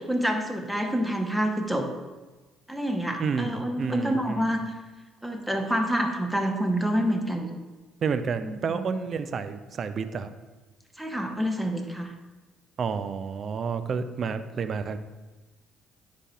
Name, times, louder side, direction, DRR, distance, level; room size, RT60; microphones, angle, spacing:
voice 1, 0.0-1.9 2.7-4.7 5.2-7.5 8.4-9.1 11.0-12.1, equal, 5° right, 3 dB, 0.9 m, -27 dB
voice 2, 3.2-4.6 8.0-10.3 12.8-15.0, right 5 dB, 50° right, 12 dB, 0.4 m, -30 dB
9.6 x 4.3 x 2.4 m, 1.2 s
hypercardioid pair, 50°, 0 cm